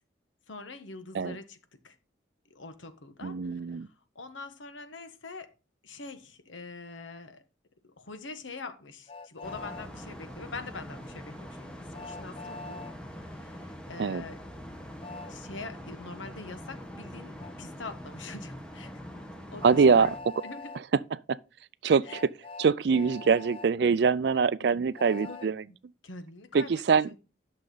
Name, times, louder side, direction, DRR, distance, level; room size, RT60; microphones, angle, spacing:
voice 1, 0.5-1.6 1.8-2.0 2.5-3.8 4.1-5.5 5.8-7.4 7.8-12.8 13.1-14.4 15.3-18.9 19.2-19.3 19.5-20.1 20.4-20.7 22.0-22.2 23.8-24.0 24.6-24.8 25.2-25.5 26.0-26.7 27.1-27.2, left 3 dB, 85° left, 1.3 m, -44 dB
voice 2, 3.2-3.9 14.0-14.2 19.6-20.1 21.3-21.4 21.8-22.3 22.6-25.6 26.5-27.1, right 5 dB, 60° right, 0.4 m, -24 dB
Train, 9.1-9.9 11.9-12.9 15.0-15.3 17.4-17.5 19.6-20.8 22.0-23.7 24.9-25.5, left 3 dB, 30° left, 0.6 m, -43 dB
sound 1, 9.4-20.2, equal, 5° left, 1.3 m, -43 dB
11.0 x 6.5 x 4.0 m
head